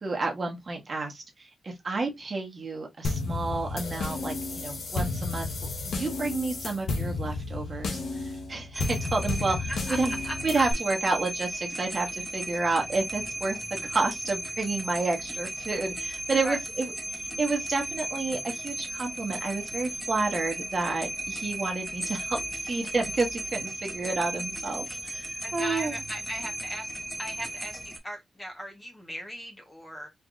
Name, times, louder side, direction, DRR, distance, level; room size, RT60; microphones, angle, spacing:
voice 1, 0.0-5.5 5.8-10.2 10.4-26.0, right 3 dB, 35° right, 1.3 m, -30 dB
sound 1, 3.0-10.7, left 3 dB, 70° left, 1.1 m, -32 dB
sound 2, 8.7-28.0, right 1 dB, 5° right, 0.9 m, -36 dB
voice 2, 10.2-10.6 16.4-16.6 25.4-26.9 27.2-30.1, equal, 15° left, 1.3 m, -37 dB
4.6 x 3.4 x 2.6 m
wide cardioid pair, 140°, 0 cm